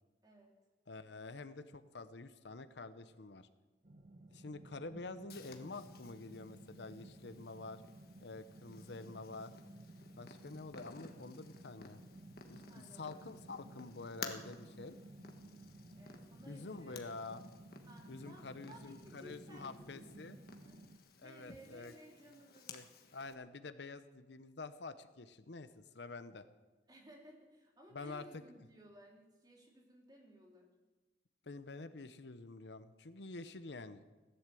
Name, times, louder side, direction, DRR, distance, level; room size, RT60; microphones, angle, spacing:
voice 1, 0.2-0.5 12.5-13.2 15.9-17.3 17.9-20.1 20.3-20.8 21.2-22.8 26.9-30.7, equal, 25° right, -1 dB, 3.1 m, -59 dB
voice 2, 0.9-3.5 4.3-7.8 8.2-9.5 10.2-12.0 12.5-12.6 12.9-15.0 16.5-17.4 18.1-20.4 21.2-21.9 22.7-22.8 23.1-26.5 27.9-28.4 31.5-34.0, left 3 dB, 75° left, 11 dB, 0.8 m, -48 dB
sound 1, 3.8-21.0, right 1 dB, 45° right, 0.9 m, -56 dB
Purr, 5.3-23.3, left 5 dB, 55° left, 1.4 m, -55 dB
16.0 x 11.0 x 7.6 m, 1.2 s
head